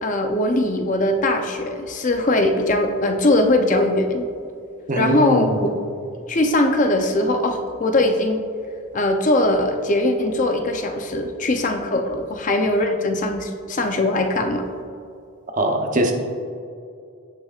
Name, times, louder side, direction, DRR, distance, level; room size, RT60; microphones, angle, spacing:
voice 1, 0.0-4.3 5.0-5.7 6.3-8.4 8.9-14.7, left 1 dB, 35° left, 5 dB, 0.5 m, -20 dB
voice 2, 4.9-5.6 15.6-16.1, right 1 dB, 35° right, 2 dB, 0.9 m, -21 dB
16.0 x 5.9 x 2.4 m, 2.4 s
head